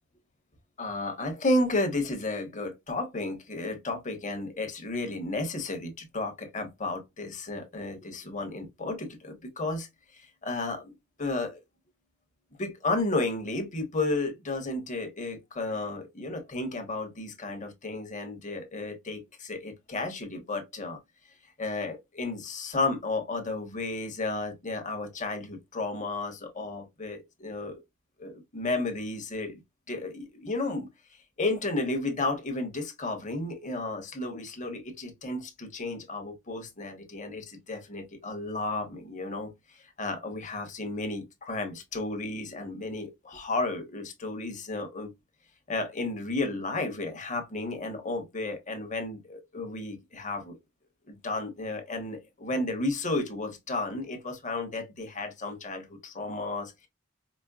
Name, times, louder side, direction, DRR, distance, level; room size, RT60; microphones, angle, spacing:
voice 1, 0.8-9.9 10.4-10.9 11.2-11.6 12.6-21.0 21.6-27.8 28.2-29.6 29.9-30.9 31.4-39.5 40.0-45.1 45.7-50.6 51.1-56.9, left 2 dB, 35° left, 1.1 m, -33 dB
5.1 x 2.1 x 2.3 m
head